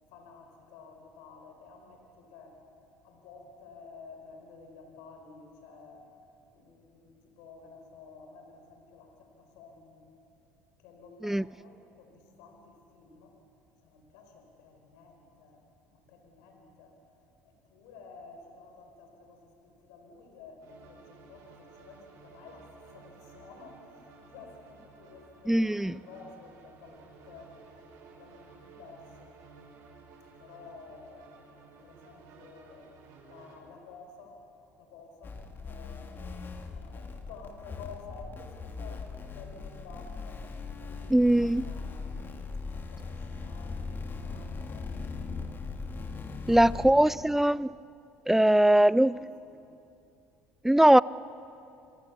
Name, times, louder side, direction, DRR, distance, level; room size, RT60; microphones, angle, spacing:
voice 1, 0.1-2.6 3.0-6.1 6.5-10.1 10.8-13.4 13.8-15.6 15.9-17.0 17.4-27.6 28.2-29.4 30.4-32.9 33.2-34.4 34.8-42.2 42.7-44.9 46.3-47.2 48.2-49.6, left 4 dB, 75° left, 4.6 m, -52 dB
sound 1, 20.6-33.6, right 4 dB, 65° right, 6.5 m, -54 dB
voice 2, 25.5-25.9 41.1-41.7 46.5-47.7 48.3-49.1 50.6-51.0, right 1 dB, 5° right, 0.5 m, -21 dB
sound 2, 35.2-46.9, left 4 dB, 35° left, 2.5 m, -39 dB
28.0 x 23.5 x 7.1 m
hypercardioid pair, 75°, 6 cm